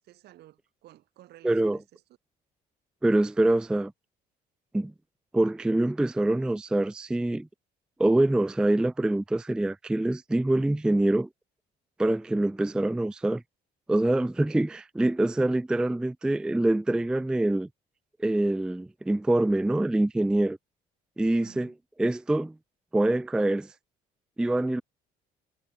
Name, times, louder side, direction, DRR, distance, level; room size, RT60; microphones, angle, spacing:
voice 1, 0.0-2.0 21.4-21.7, right 15 dB, 75° right, 6.5 m, -54 dB
voice 2, 1.4-1.8 3.0-3.9 4.7-4.9 5.3-7.5 8.0-11.3 12.0-13.4 13.9-17.7 18.2-20.6 21.2-21.7 22.0-22.5 22.9-23.7 24.4-24.8, right 1 dB, 5° right, 0.3 m, -25 dB
cardioid pair, 110°, 17 cm